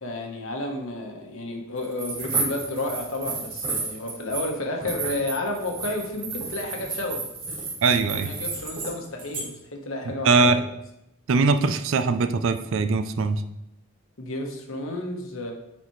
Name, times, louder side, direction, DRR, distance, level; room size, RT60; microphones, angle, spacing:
voice 1, 0.0-7.3 8.2-10.5 14.2-15.5, left 1 dB, 65° left, 2 dB, 1.2 m, -31 dB
sound 1, 1.8-4.5 4.8-8.9 9.2-9.4, right 4 dB, 25° right, 2.6 m, -32 dB
voice 2, 7.8-8.3 10.2-10.6 11.3-13.4, right 4 dB, 65° right, 10 dB, 0.5 m, -21 dB
8.8 x 4.2 x 3.1 m, 0.84 s
head